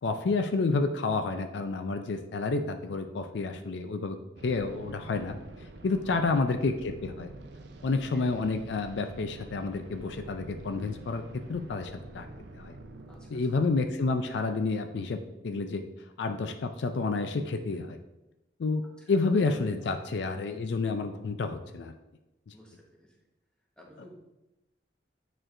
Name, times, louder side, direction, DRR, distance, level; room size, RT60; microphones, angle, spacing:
voice 1, 0.0-4.2 4.4-7.3 7.8-11.2 11.5-12.3 12.6-12.7 13.3-15.2 15.4-15.8 16.2-18.0 18.6-18.8 19.1-21.9 22.5-22.6, left 3 dB, 70° left, 7 dB, 0.4 m, -29 dB
sound 1, 4.4-15.1, right 2 dB, 65° right, 0.6 m, -47 dB
voice 2, 13.1-13.5 19.0-19.3 22.5-23.2 23.8-24.2, equal, 5° left, -3 dB, 1.1 m, -54 dB
8.7 x 4.4 x 2.6 m, 0.97 s
head